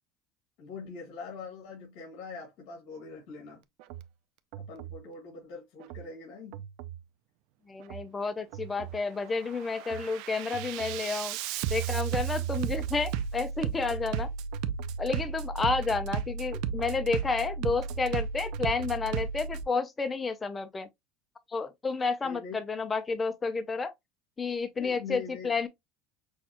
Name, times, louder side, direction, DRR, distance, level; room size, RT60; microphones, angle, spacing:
voice 1, 0.6-3.6 4.6-6.6 22.2-22.6 24.8-25.5, left 4 dB, 65° left, 2.2 m, -43 dB
Bass drum, 3.8-4.1 4.5-5.0 5.8-6.1 6.5-7.0 7.8-8.1 8.5-9.0 9.4-19.6, right 7 dB, 65° right, 0.5 m, -34 dB
voice 2, 7.7-11.4 11.7-14.3 15.0-20.9 21.5-23.9 24.4-25.7, left 4 dB, 15° left, 0.5 m, -31 dB
6.3 x 2.3 x 2.9 m
cardioid pair, 155°, 0 cm